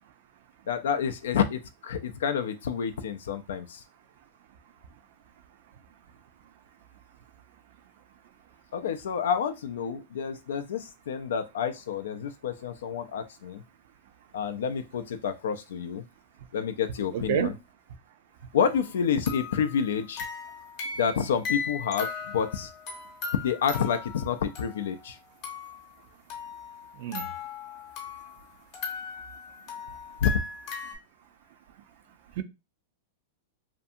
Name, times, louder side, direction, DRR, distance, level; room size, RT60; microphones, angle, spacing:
voice 1, 0.7-3.8 8.7-13.6 14.3-16.0 16.5-17.5 18.5-20.3 21.0-22.7 23.4-25.2 30.2-30.3, left 7 dB, 80° left, 0.3 m, -29 dB
voice 2, 17.1-17.6 27.0-27.3 32.4-32.5, right 10 dB, 60° right, 0.4 m, -28 dB
sound 1, 18.7-18.8 19.3-25.1 25.4-25.8 26.3-28.4 28.7-30.9, left 5 dB, 45° left, 0.8 m, -38 dB
2.5 x 2.4 x 2.6 m
hypercardioid pair, 135°, 0 cm